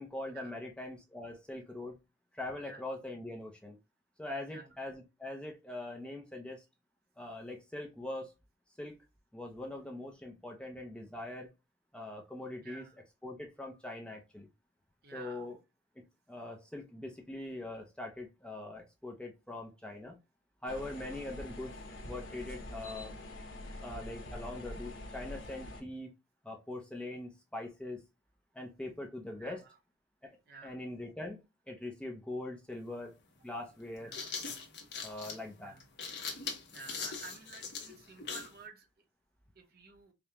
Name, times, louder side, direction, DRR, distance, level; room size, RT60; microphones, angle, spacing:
voice 1, 0.0-1.9 2.3-3.8 4.2-6.6 7.2-8.3 8.8-9.0 9.3-11.5 11.9-12.8 13.2-14.5 15.1-15.6 16.0-20.1 20.6-21.7 22.1-23.1 23.8-26.1 26.4-28.0 28.5-29.6 30.2-30.3 30.6-31.4 31.7-33.2 33.4-34.1 35.0-35.7, left 2 dB, 5° left, 0.6 m, -42 dB
voice 2, 12.6-13.0 15.0-15.5 29.4-29.7 30.5-30.8 34.0-34.3 35.6-35.8 36.7-38.9 39.5-40.1, right 4 dB, 55° right, 0.9 m, -51 dB
sound 1, 20.7-25.8, left 1 dB, 85° left, 1.1 m, -45 dB
sound 2, 32.7-32.8 33.8-38.6, left 5 dB, 60° left, 1.0 m, -41 dB
5.1 x 2.3 x 2.9 m
head